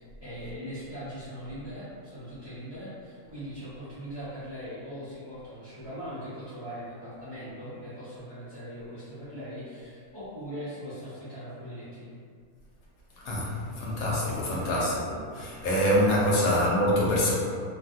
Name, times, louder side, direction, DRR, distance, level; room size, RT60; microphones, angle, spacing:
voice 1, 0.0-12.2 14.4-14.9 16.2-16.6, equal, 35° right, -14 dB, 0.4 m, -40 dB
voice 2, 13.2-17.3, equal, 75° left, -6 dB, 1.2 m, -25 dB
3.1 x 2.3 x 2.6 m, 2.2 s
omnidirectional pair, 1.5 m